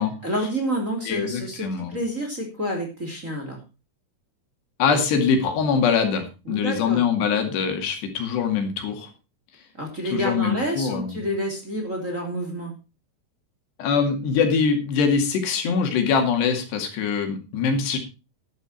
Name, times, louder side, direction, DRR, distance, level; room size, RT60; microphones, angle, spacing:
voice 1, 0.2-3.6 6.4-7.0 9.8-12.7, equal, 20° right, 2 dB, 2.8 m, -28 dB
voice 2, 1.1-1.9 4.8-9.1 10.1-11.2 13.8-18.0, left 6 dB, 80° left, 5 dB, 4.4 m, -23 dB
12.0 x 11.0 x 4.4 m, 0.30 s
omnidirectional pair, 4.8 m